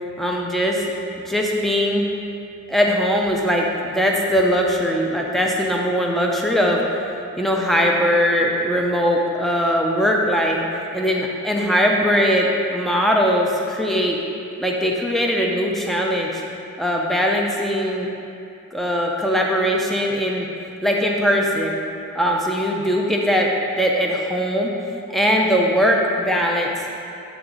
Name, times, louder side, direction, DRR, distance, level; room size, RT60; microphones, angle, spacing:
voice 1, 0.2-0.8 1.2-2.0 2.7-6.8 7.4-10.6 10.9-14.2 14.6-16.4 16.8-18.1 18.7-20.5 20.8-21.8 22.1-23.5 23.8-24.7 25.1-26.7, equal, ahead, -1 dB, 0.4 m, -20 dB
7.8 x 3.4 x 3.8 m, 2.7 s
head